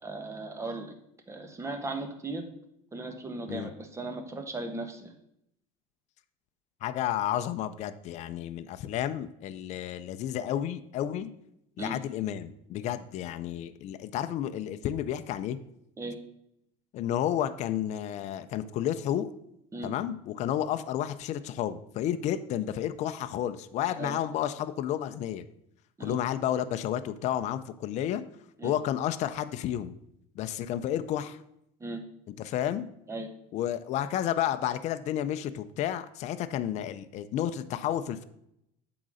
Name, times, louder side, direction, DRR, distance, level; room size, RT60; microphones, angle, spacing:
voice 1, 0.0-0.9 1.3-2.4 2.9-5.1 11.8-12.0 16.0-16.2 19.7-19.9 24.0-24.2 26.0-26.2 28.6-28.7 31.8-32.0 33.1-33.3, right 2 dB, 20° right, 6 dB, 1.3 m, -37 dB
voice 2, 6.8-11.3 11.8-15.6 16.9-19.3 19.8-25.4 26.0-28.2 28.6-29.9 30.4-31.4 32.4-32.9 33.5-38.2, left 11 dB, 55° left, 11 dB, 0.5 m, -31 dB
8.0 x 3.9 x 6.3 m, 0.77 s
cardioid pair, 120°, 14 cm